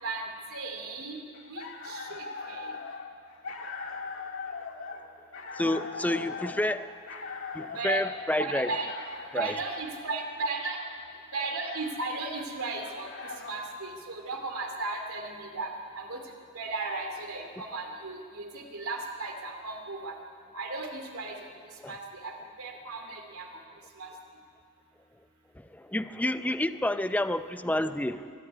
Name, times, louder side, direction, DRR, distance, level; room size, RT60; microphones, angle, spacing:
voice 1, 0.0-1.2 1.5-2.8 7.7-8.0 8.4-9.0 9.3-10.8 11.3-16.2 16.5-20.1 20.5-21.5 21.9-23.5 24.0-24.1, right 3 dB, 80° right, 3 dB, 2.6 m, -36 dB
sound 1, 1.3-13.8, left 4 dB, 65° left, 1.9 m, -41 dB
voice 2, 5.6-6.9 7.5-8.7 9.3-9.5 21.8-21.9 25.6-28.3, left 1 dB, 5° left, 11 dB, 0.5 m, -29 dB
23.0 x 13.0 x 9.9 m, 2.3 s
head